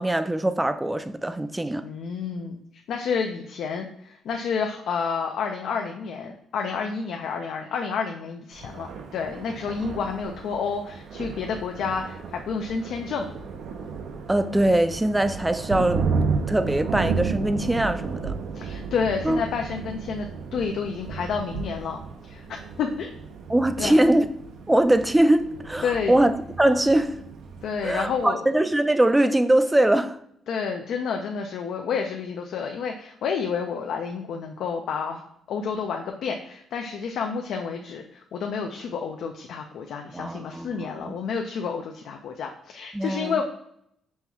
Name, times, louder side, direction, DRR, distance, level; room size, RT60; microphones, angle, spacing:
voice 1, 0.0-1.8 14.3-18.4 19.2-19.4 23.5-24.3 24.7-27.2 27.8-30.2 40.1-41.1 42.9-43.4, right 1 dB, 10° right, 10 dB, 0.3 m, -22 dB
voice 2, 1.8-2.6 2.9-13.3 18.5-22.0 22.3-23.1 23.8-24.1 25.8-26.2 27.6-28.4 30.5-35.2 35.5-43.4, left 6 dB, 75° left, 3 dB, 0.4 m, -30 dB
Thunder, 8.5-28.3, right 5 dB, 75° right, 0.5 m, -33 dB
5.4 x 2.3 x 3.0 m, 0.72 s
cardioid pair, 90°, 0 cm